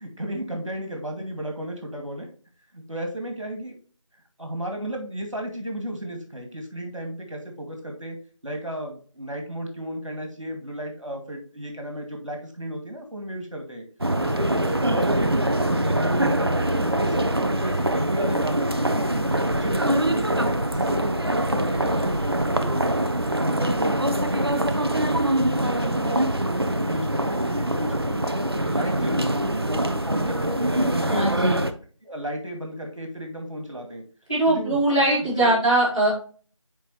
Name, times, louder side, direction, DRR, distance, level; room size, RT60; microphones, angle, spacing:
voice 1, 0.0-2.3 2.7-3.7 4.4-8.2 8.4-13.8 14.2-15.3 15.6-19.2 19.5-23.0 23.6-25.3 25.6-28.2 28.5-29.3 29.7-31.6 32.0-34.0 34.5-35.0 35.4-35.5, right 1 dB, 70° right, 3 dB, 2.3 m, -34 dB
sound 1, 14.0-31.7, right 1 dB, 50° right, 0.6 m, -24 dB
voice 2, 31.1-31.6 34.3-36.1, right 1 dB, 10° left, -13 dB, 2.2 m, -21 dB
7.5 x 4.8 x 3.2 m, 0.42 s
figure-of-eight pair, 175°, 17 cm